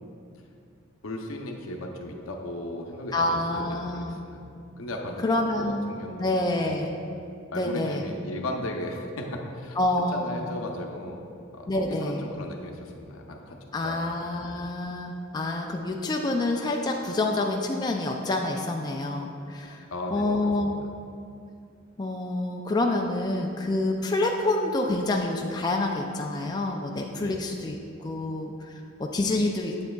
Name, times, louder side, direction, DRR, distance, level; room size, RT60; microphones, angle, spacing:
voice 1, 1.0-4.5 4.8-6.4 6.7-6.8 7.5-9.8 10.1-11.2 11.5-13.6 13.8-14.1 19.9-20.8 27.2-27.5, left 1 dB, 75° left, 2 dB, 0.7 m, -36 dB
voice 2, 3.1-4.2 5.2-5.9 6.2-6.9 7.5-8.0 9.8-10.5 11.7-12.2 13.7-19.8 20.1-20.9 22.0-28.7 29.0-29.8, left 2 dB, 20° left, 1 dB, 0.3 m, -27 dB
7.9 x 7.4 x 2.3 m, 2.5 s
head